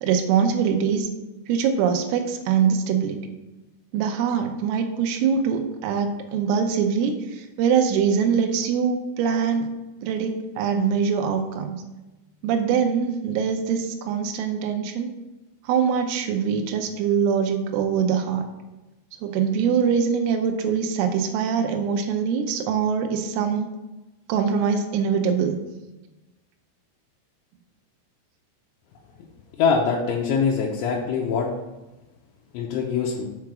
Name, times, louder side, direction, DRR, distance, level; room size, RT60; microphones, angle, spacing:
voice 1, 0.0-1.1 1.5-3.2 3.9-9.7 10.0-11.8 12.4-15.1 15.7-18.5 19.2-23.7 24.3-25.6, right 7 dB, 90° right, 4 dB, 3.5 m, -23 dB
voice 2, 29.6-31.5 32.5-33.2, left 5 dB, 80° left, -2 dB, 3.0 m, -23 dB
7.7 x 4.9 x 5.8 m, 1.0 s
omnidirectional pair, 5.8 m